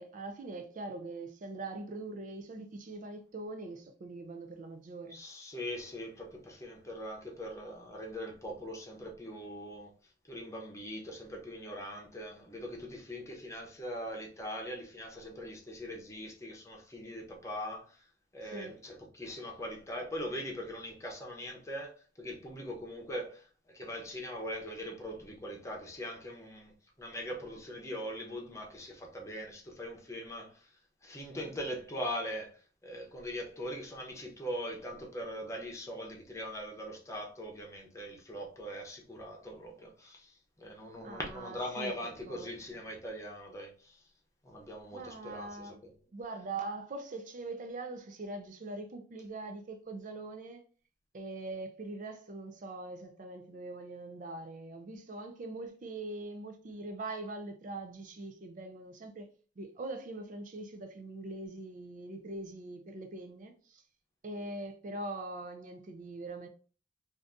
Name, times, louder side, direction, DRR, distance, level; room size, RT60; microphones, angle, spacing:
voice 1, 0.0-5.2 18.4-18.8 41.0-41.9 42.3-42.8 44.9-45.8 46.1-50.6 51.1-59.3 59.6-63.8 64.2-66.5, right 2 dB, 45° right, 0.4 m, -42 dB
voice 2, 5.1-9.9 10.3-18.0 18.3-26.7 27.0-30.7 31.0-44.0 44.4-45.7, equal, 15° left, 0.7 m, -41 dB
2.6 x 2.5 x 3.4 m
head